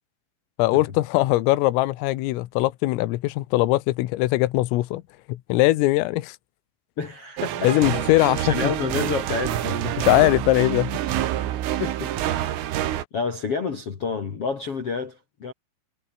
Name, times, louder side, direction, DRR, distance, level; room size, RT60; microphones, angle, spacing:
voice 1, 0.6-5.0 5.3-6.4 7.6-8.7 10.0-11.0, left 18 dB, 80° left, 3.7 m, -21 dB
voice 2, 7.0-9.8 10.2-10.3 11.8-12.6 13.1-15.5, left 4 dB, 45° left, 2.0 m, -30 dB
sound 1, 7.4-13.1, right 12 dB, 75° right, 4.5 m, -27 dB
omnidirectional pair, 6.0 m